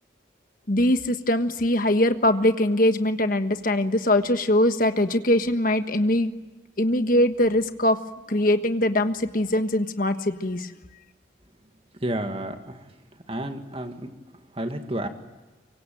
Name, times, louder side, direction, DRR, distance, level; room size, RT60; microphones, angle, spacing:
voice 1, 0.7-6.3 6.8-8.0 8.3-10.7, left 1 dB, 45° left, 8 dB, 1.4 m, -22 dB
voice 2, 12.0-12.8 13.3-14.1 14.6-15.1, right 1 dB, 30° right, 6 dB, 2.0 m, -30 dB
24.0 x 24.0 x 9.2 m, 1.2 s
head